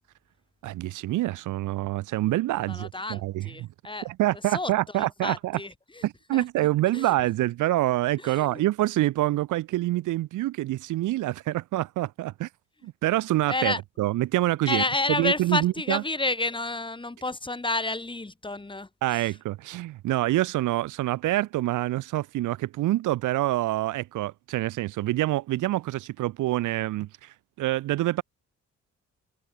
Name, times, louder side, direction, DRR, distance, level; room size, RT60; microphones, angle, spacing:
voice 1, 0.6-3.7 4.0-5.6 6.0-12.5 12.8-14.8 15.2-16.0 19.0-28.2, right 16 dB, 85° right, 1.1 m, -26 dB
voice 2, 2.7-6.1 6.3-6.7 6.9-7.1 8.2-8.7 13.5-13.8 14.6-19.4, left 2 dB, 15° left, 6.3 m, -31 dB
cardioid pair, 90°, 30 cm